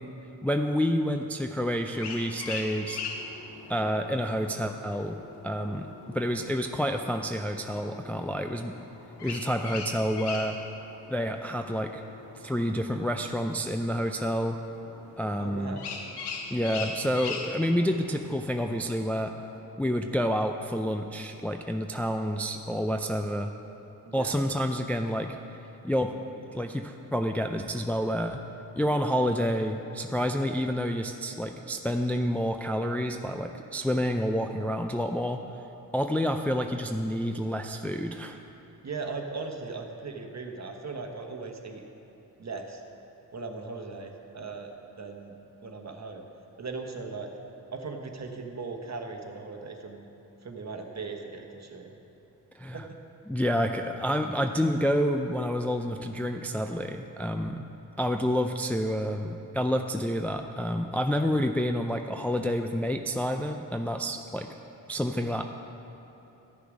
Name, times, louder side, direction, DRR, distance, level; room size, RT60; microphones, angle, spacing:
voice 1, 0.4-3.0 3.7-8.7 9.2-10.6 11.1-12.0 12.4-14.6 15.2-15.8 16.5-19.3 19.8-23.5 24.1-25.4 25.8-26.1 26.4-28.4 28.8-35.4 35.9-38.4 52.6-52.8 53.3-57.7 58.0-64.5 64.9-65.4, equal, 5° left, 5 dB, 0.4 m, -29 dB
sound 1, 1.8-19.6, left 4 dB, 85° left, 0.9 m, -42 dB
voice 2, 15.4-15.9 24.1-24.3 38.8-41.8 42.4-42.8 43.3-44.7 45.0-45.3 45.6-46.2 46.6-47.3 47.7-50.1 50.4-51.9 52.7-53.0, right 4 dB, 45° right, 3 dB, 1.2 m, -38 dB
11.5 x 6.8 x 5.1 m, 3.0 s
cardioid pair, 45°, 39 cm